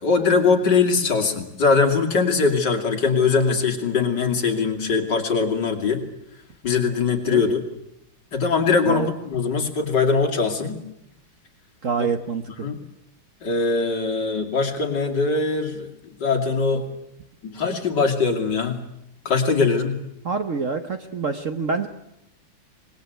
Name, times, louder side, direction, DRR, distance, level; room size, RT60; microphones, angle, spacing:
voice 1, 0.0-6.0 6.6-7.6 8.3-10.8 12.6-12.8 13.4-15.9 16.2-16.9 17.4-18.8 19.2-20.0, left 4 dB, 60° left, 5 dB, 3.0 m, -21 dB
voice 2, 11.8-12.4 20.2-21.9, right 5 dB, 45° right, 8 dB, 1.2 m, -26 dB
25.0 x 21.0 x 8.0 m, 0.81 s
omnidirectional pair, 2.2 m